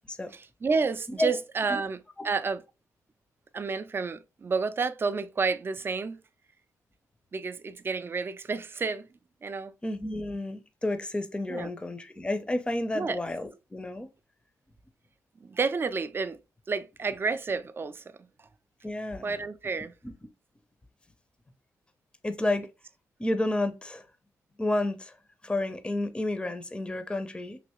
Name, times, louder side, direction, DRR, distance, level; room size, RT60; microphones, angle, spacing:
voice 1, 0.3-2.6 3.5-6.2 7.3-9.1 9.4-9.7 11.5-11.7 12.9-13.2 15.4-16.4 16.7-18.0 18.4-18.5 19.2-19.9, right 4 dB, 35° right, 0.4 m, -30 dB
voice 2, 9.8-14.1 18.8-19.4 20.0-20.1 22.2-22.7 23.2-24.1 24.6-25.2 25.4-27.6, left 1 dB, 15° left, 0.5 m, -31 dB
3.2 x 2.9 x 2.9 m
supercardioid pair, 60°, 7 cm